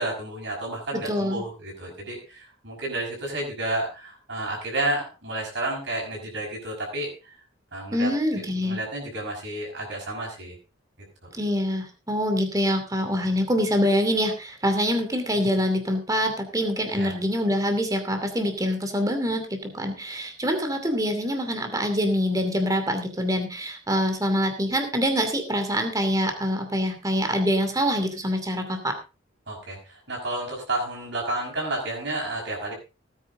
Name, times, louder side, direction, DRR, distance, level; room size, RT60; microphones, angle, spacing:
voice 1, 0.0-7.3 7.7-8.1 8.5-10.6 16.9-17.1 29.5-32.7, right 2 dB, 60° right, -1 dB, 5.8 m, -31 dB
voice 2, 1.1-1.4 7.9-8.8 11.3-29.0, equal, 15° right, 6 dB, 2.5 m, -25 dB
17.5 x 9.6 x 3.7 m, 0.30 s
head